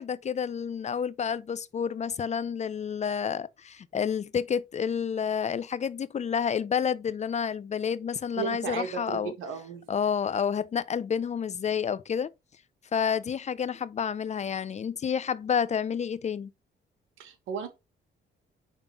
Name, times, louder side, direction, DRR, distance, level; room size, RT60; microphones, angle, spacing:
voice 1, 0.0-9.3 9.9-12.3 12.9-16.5, left 7 dB, 35° left, 0.4 m, -29 dB
voice 2, 8.4-9.9 17.2-17.7, right 7 dB, 90° right, 1.5 m, -35 dB
5.2 x 3.6 x 5.7 m
cardioid pair, 90°, 20 cm